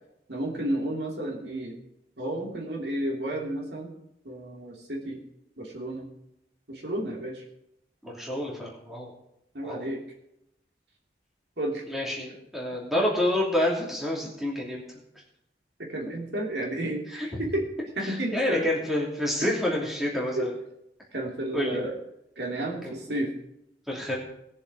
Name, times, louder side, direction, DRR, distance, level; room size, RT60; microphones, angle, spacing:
voice 1, 0.3-1.8 2.2-3.9 4.2-5.2 5.6-6.1 6.7-7.4 9.5-10.0 11.6-11.8 15.8-17.7 18.0-18.7 19.4-19.5 20.3-20.5 21.1-22.0 22.4-23.3, right 1 dB, 75° right, 0 dB, 2.8 m, -32 dB
voice 2, 8.0-9.1 9.6-9.8 11.9-14.8 17.1-17.3 18.0-20.5 21.5-21.9 23.9-24.2, left 1 dB, ahead, -3 dB, 2.8 m, -28 dB
19.5 x 7.1 x 4.8 m, 0.81 s
head